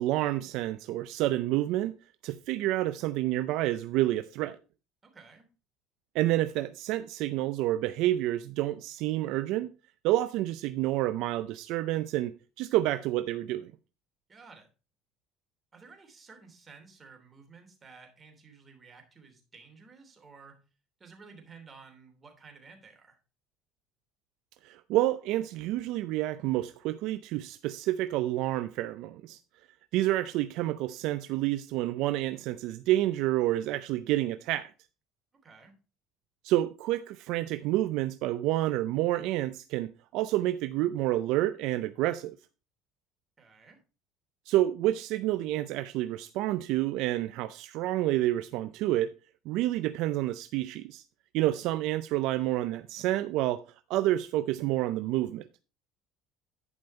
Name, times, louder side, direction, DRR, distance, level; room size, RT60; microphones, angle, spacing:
voice 1, 0.0-2.0 2.2-4.6 6.1-9.7 10.0-13.7 24.6-29.4 29.9-34.7 36.4-42.4 44.5-49.1 49.5-51.0 51.3-53.6 53.9-55.5, right 15 dB, 70° right, 0.5 m, -29 dB
voice 2, 5.0-5.5 14.3-14.7 15.7-20.6 21.0-23.2 30.3-30.4 35.3-35.7 43.4-43.8, right 5 dB, 25° right, 3.1 m, -53 dB
11.0 x 5.4 x 4.3 m
supercardioid pair, 105°, 0 cm